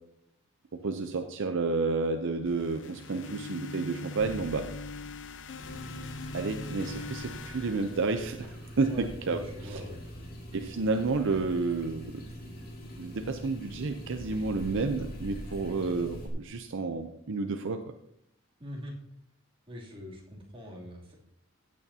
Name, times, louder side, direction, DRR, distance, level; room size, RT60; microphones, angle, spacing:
voice 1, 0.8-4.7 6.3-9.8 10.5-12.2 13.0-17.8, right 3 dB, 60° right, 6 dB, 0.6 m, -31 dB
sound 1, 2.5-8.6, left 3 dB, 60° left, 0.6 m, -42 dB
Bowed string instrument, 4.2-10.6, equal, 80° left, 4.9 m, -52 dB
sound 2, 5.6-16.3, equal, 45° left, 2.2 m, -43 dB
voice 2, 8.8-10.0 18.6-18.9 19.7-21.1, equal, 25° right, -4 dB, 2.9 m, -42 dB
15.5 x 8.5 x 2.8 m, 0.75 s
head